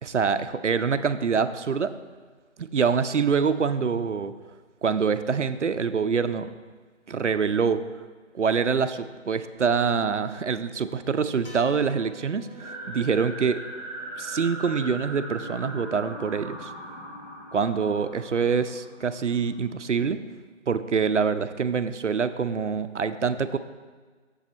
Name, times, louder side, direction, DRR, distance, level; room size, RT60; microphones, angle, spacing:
voice 1, 0.0-1.9 2.6-4.3 4.8-6.5 7.1-7.8 8.3-13.6 14.2-16.7 17.5-20.2 20.7-23.6, right 6 dB, 70° right, 11 dB, 0.5 m, -25 dB
sound 1, 11.4-15.8, equal, 45° left, 1.3 m, -51 dB
sound 2, 12.6-19.5, right 1 dB, 5° left, 1.6 m, -39 dB
7.1 x 7.0 x 4.4 m, 1.4 s
figure-of-eight pair, 180°, 38 cm